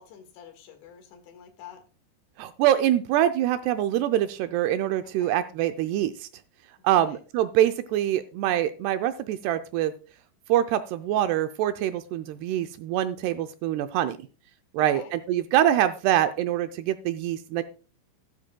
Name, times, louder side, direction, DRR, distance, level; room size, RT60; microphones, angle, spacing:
voice 1, 0.0-1.8 5.0-5.3 6.9-7.2 14.8-15.1, left 9 dB, 80° left, 7 dB, 3.9 m, -46 dB
voice 2, 2.4-6.3 6.8-9.9 10.5-14.2 14.7-17.6, right 12 dB, 80° right, 9 dB, 2.5 m, -24 dB
13.0 x 12.5 x 2.2 m, 0.36 s
omnidirectional pair, 5.1 m